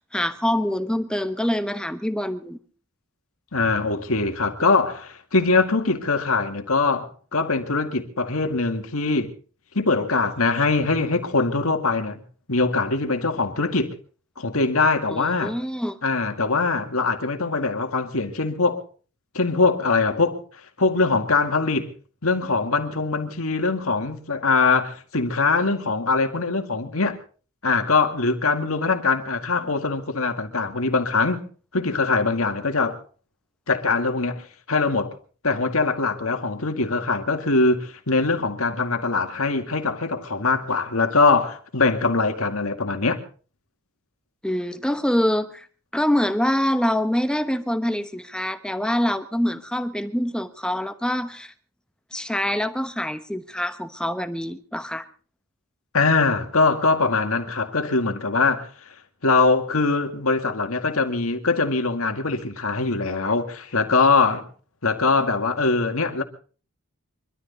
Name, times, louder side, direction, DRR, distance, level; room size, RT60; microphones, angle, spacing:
voice 1, 0.0-2.6 15.1-16.0 44.4-45.7 45.9-51.5 52.1-55.1, equal, 5° left, 1.0 m, -25 dB
voice 2, 3.5-9.3 9.7-12.2 12.5-14.0 14.4-15.5 16.0-18.8 19.3-20.4 20.8-21.9 22.2-27.2 27.6-31.4 31.7-33.0 33.7-35.2 35.4-43.2 55.9-58.7 59.2-64.5 64.8-66.2, left 3 dB, 75° left, 2.1 m, -22 dB
24.0 x 13.0 x 4.0 m
head